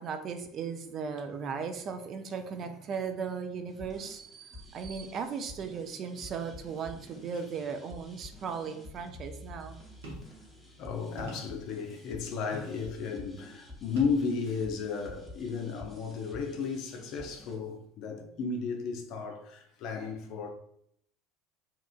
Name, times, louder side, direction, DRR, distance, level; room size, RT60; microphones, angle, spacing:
voice 1, 0.0-9.8 18.4-18.5, right 6 dB, 45° right, 0.4 m, -37 dB
sound 1, 3.7-17.6, left 1 dB, 5° right, 0.9 m, -50 dB
sound 2, 10.0-10.4 11.2-11.6 12.5-12.8 14.0-14.2 14.9-15.0, right 2 dB, 75° right, 0.9 m, -44 dB
voice 2, 10.8-20.5, left 5 dB, 55° left, 0.5 m, -34 dB
2.8 x 2.4 x 2.3 m
figure-of-eight pair, 70°, 0 cm